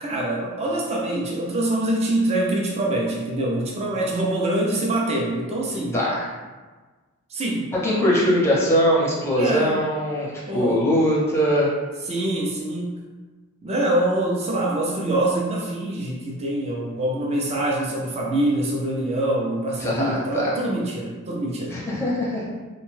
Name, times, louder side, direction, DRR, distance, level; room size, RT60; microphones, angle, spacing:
voice 1, 0.0-6.0 7.3-7.7 9.3-9.8 10.5-10.9 12.1-13.0 13.6-21.8, right 1 dB, 30° right, -3 dB, 0.4 m, -24 dB
voice 2, 5.9-6.3 7.8-11.7 19.8-20.6 21.7-22.4, equal, 10° left, -5 dB, 0.6 m, -21 dB
2.7 x 2.2 x 3.1 m, 1.3 s
head